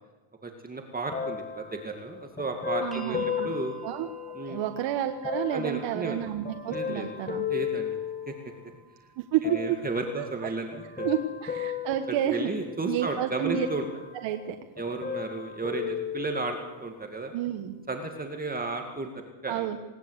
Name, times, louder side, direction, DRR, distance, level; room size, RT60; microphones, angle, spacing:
voice 1, 0.4-3.8 4.3-4.6 5.5-6.2 6.7-7.1 7.5-8.0 8.3-8.4 9.4-11.1 12.1-13.9 14.8-17.3 17.9-19.8, right 3 dB, 20° right, 3 dB, 2.2 m, -33 dB
sound 1, 1.1-4.7 5.2-8.7 9.4-10.1 10.7-13.0 13.5-14.5 14.8-16.8 17.5-17.6, left 8 dB, 20° left, 2.2 m, -35 dB
voice 2, 2.8-3.5 3.8-4.1 4.5-7.5 9.2-9.8 10.2-10.5 11.0-12.5 12.9-13.7 14.2-14.6 17.3-17.7 19.5-19.8, right 10 dB, 65° right, 6 dB, 1.5 m, -30 dB
sound 2, 2.9-15.0 16.1-16.2, right 4 dB, ahead, 2.7 m, -54 dB
20.0 x 19.0 x 8.2 m, 1.2 s
cardioid pair, 120°, 48 cm